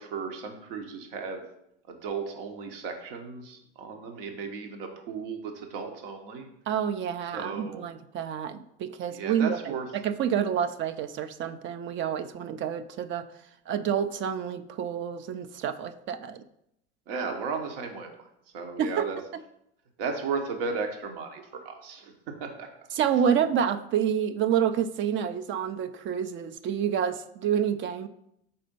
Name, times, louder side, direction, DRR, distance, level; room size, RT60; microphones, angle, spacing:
voice 1, 0.0-1.4 1.9-6.5 7.3-7.9 9.1-9.9 17.1-18.1 18.5-19.2 20.0-22.1 22.4-22.7, right 5 dB, 75° right, 4 dB, 1.1 m, -35 dB
voice 2, 6.7-13.3 13.7-16.4 18.8-19.4 23.0-28.1, right 8 dB, 40° right, 11 dB, 0.4 m, -28 dB
4.3 x 4.2 x 5.2 m, 0.77 s
hypercardioid pair, 85°, 29 cm